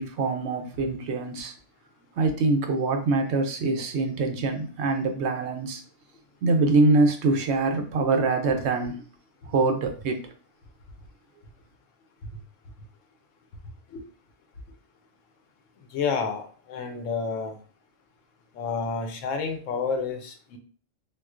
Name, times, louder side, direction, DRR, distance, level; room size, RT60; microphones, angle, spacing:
voice 1, 0.0-1.5 2.2-5.8 6.4-9.0 9.5-10.3, right 3 dB, 70° right, 0.8 m, -24 dB
voice 2, 15.9-17.6 18.6-20.6, left 5 dB, 90° left, 1.0 m, -30 dB
3.7 x 2.3 x 2.4 m
omnidirectional pair, 1.3 m